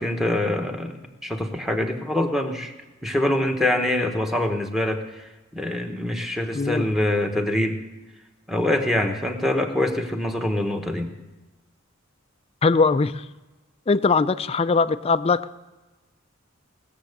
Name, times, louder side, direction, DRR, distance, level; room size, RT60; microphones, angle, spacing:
voice 1, 0.0-2.7 3.0-7.8 8.5-11.1, left 1 dB, ahead, 4 dB, 1.2 m, -25 dB
voice 2, 6.5-6.9 12.6-13.3 13.9-15.5, left 4 dB, 30° left, 14 dB, 0.4 m, -21 dB
19.0 x 7.5 x 6.7 m, 1.1 s
head